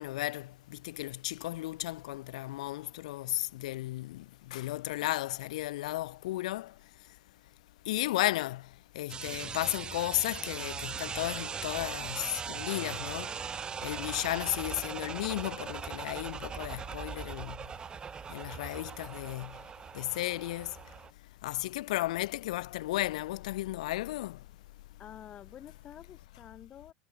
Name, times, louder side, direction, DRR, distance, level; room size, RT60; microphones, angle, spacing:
voice 1, 0.0-4.2 4.5-6.7 7.9-8.6 8.9-13.3 13.8-17.6 18.3-19.5 19.9-20.7 21.4-24.4, left 16 dB, 80° left, 1.0 m, -34 dB
sound 1, 9.1-21.1, right 6 dB, 25° right, 1.2 m, -40 dB
voice 2, 25.0-26.9, left 10 dB, 35° left, 5.6 m, -49 dB
supercardioid pair, 120°, 4 cm